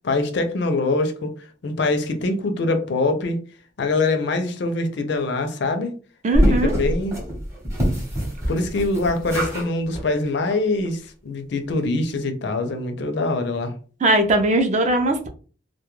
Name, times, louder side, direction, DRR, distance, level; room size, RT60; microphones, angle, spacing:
voice 1, 0.0-1.4 1.6-3.4 3.8-5.9 6.5-7.1 8.5-13.7, left 2 dB, 55° left, 0.4 m, -24 dB
voice 2, 6.2-6.7 14.0-15.3, right 1 dB, 35° right, 0.3 m, -19 dB
sound 1, 6.3-9.7 9.9-10.1 10.5-10.6 10.8-10.9, equal, 15° right, 0.8 m, -24 dB
2.2 x 2.1 x 3.0 m
head